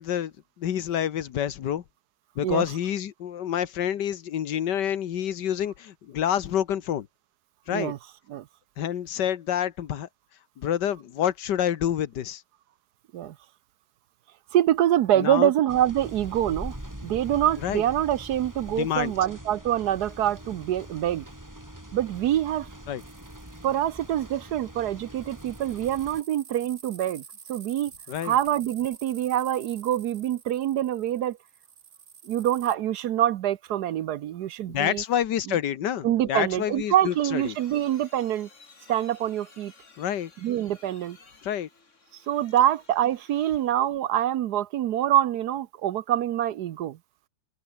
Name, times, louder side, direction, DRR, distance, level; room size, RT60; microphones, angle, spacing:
voice 1, 0.0-1.8 2.4-7.1 7.7-7.9 8.8-10.1 10.6-12.4 15.2-15.5 17.6-17.8 18.7-19.1 22.9-23.0 28.1-28.4 34.7-37.5 40.0-40.3 41.4-41.7, left 10 dB, 75° left, 1.7 m, -28 dB
voice 2, 14.5-16.8 17.0-21.2 21.9-22.7 23.6-27.2 27.5-27.9 28.2-31.4 32.3-35.0 35.5-35.6 36.0-38.5 38.9-39.7 40.4-41.2 42.3-47.0, right 11 dB, 70° right, 1.2 m, -25 dB
sound 1, 15.7-26.2, right 1 dB, 10° right, 4.3 m, -43 dB
sound 2, 23.0-24.2 25.2-32.8, right 6 dB, 45° right, 1.8 m, -49 dB
sound 3, 36.3-43.9, left 4 dB, 40° left, 2.7 m, -55 dB
open air
omnidirectional pair, 1.9 m